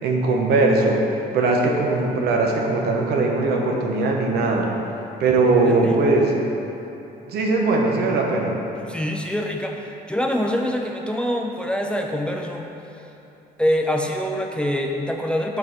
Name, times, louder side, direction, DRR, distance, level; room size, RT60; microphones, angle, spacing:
voice 1, 0.0-1.0 1.3-4.7 5.2-6.3 7.3-8.6, right 3 dB, 70° right, 0 dB, 1.0 m, -20 dB
voice 2, 5.6-6.0 8.9-12.7 13.6-15.6, equal, 5° left, 1 dB, 0.4 m, -25 dB
6.9 x 4.9 x 4.2 m, 3.0 s
cardioid pair, 110°, 17 cm